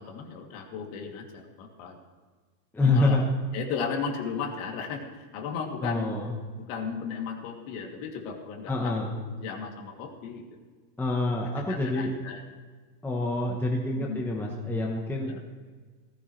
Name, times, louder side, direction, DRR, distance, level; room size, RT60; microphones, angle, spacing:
voice 1, 0.0-2.0 2.8-3.2 3.5-6.1 6.6-10.4 11.7-12.4 14.0-14.3 15.3-15.4, left 6 dB, 50° left, 1 dB, 2.8 m, -35 dB
voice 2, 2.7-3.2 5.8-6.3 8.7-9.1 11.0-12.1 13.0-15.4, left 2 dB, 5° left, -1 dB, 1.0 m, -27 dB
18.0 x 16.0 x 3.3 m, 1.5 s
supercardioid pair, 160°, 50 cm